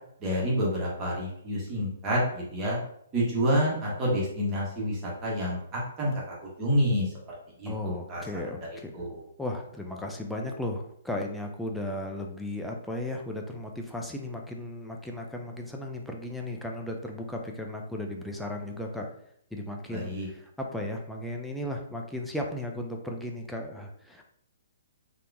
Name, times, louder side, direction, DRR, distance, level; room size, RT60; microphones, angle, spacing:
voice 1, 0.2-2.8 3.1-7.7 8.1-8.2 8.9-9.2 19.9-20.3, equal, 20° right, -5 dB, 1.4 m, -28 dB
voice 2, 7.7-8.9 9.4-19.1 19.5-24.2, left 1 dB, ahead, 0 dB, 0.5 m, -35 dB
3.8 x 2.9 x 3.5 m, 0.68 s
hypercardioid pair, 150°, 0 cm